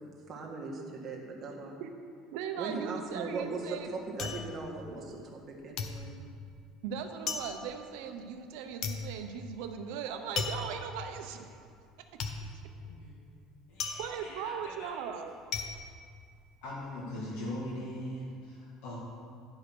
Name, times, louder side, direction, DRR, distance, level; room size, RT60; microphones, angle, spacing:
voice 1, 0.3-1.7 2.6-3.6 3.9-6.2, right 3 dB, 30° right, -2 dB, 1.4 m, -39 dB
voice 2, 2.3-4.0 6.8-11.5 14.0-15.4, right 7 dB, 85° right, 6 dB, 0.8 m, -38 dB
sound 1, 3.1-5.5 5.8-16.9 17.2-17.8, left 5 dB, 45° left, 0.7 m, -39 dB
voice 3, 12.8-13.2 13.7-15.1 16.6-19.0, left 1 dB, 80° left, -6 dB, 2.0 m, -41 dB
10.5 x 4.9 x 6.0 m, 2.2 s
cardioid pair, 150°, 0 cm